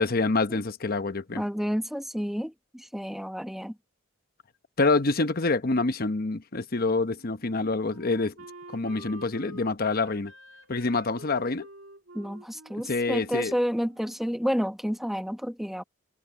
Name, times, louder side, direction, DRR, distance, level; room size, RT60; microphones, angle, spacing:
voice 1, 0.0-1.4 4.8-8.3 8.7-10.3 10.7-11.7 12.7-13.5, left 3 dB, 50° left, 1.0 m, -26 dB
voice 2, 1.3-3.7 12.1-15.8, equal, ahead, 1.2 m, -30 dB
Wind instrument woodwind instrument, 6.9-14.4, right 2 dB, 70° right, 2.6 m, -49 dB
head